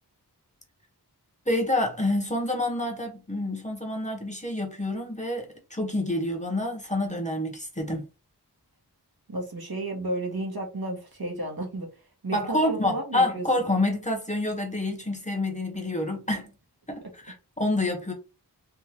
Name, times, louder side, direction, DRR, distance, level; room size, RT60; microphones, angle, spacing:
voice 1, 1.5-8.0 12.3-16.5 16.9-18.1, left 1 dB, 15° left, 1.1 m, -28 dB
voice 2, 9.3-11.9 12.2-13.5, right 2 dB, 65° right, 1.3 m, -32 dB
3.7 x 2.6 x 2.9 m
wide cardioid pair, 40°, 41 cm